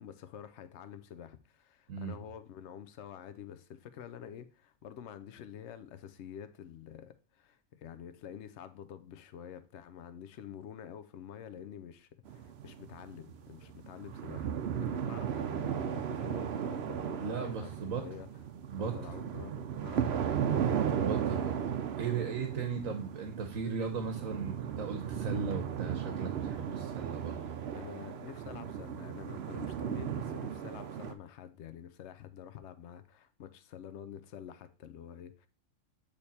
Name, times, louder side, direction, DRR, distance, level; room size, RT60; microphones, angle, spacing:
voice 1, 0.0-18.3 18.7-20.7 27.7-35.5, left 9 dB, 65° left, 0.9 m, -48 dB
voice 2, 1.9-2.2 17.2-18.0 18.7-19.0 21.0-27.5, right 5 dB, 85° right, 1.3 m, -37 dB
sound 1, 12.3-31.1, right 8 dB, 60° right, 0.8 m, -36 dB
8.6 x 3.3 x 4.1 m
omnidirectional pair, 1.4 m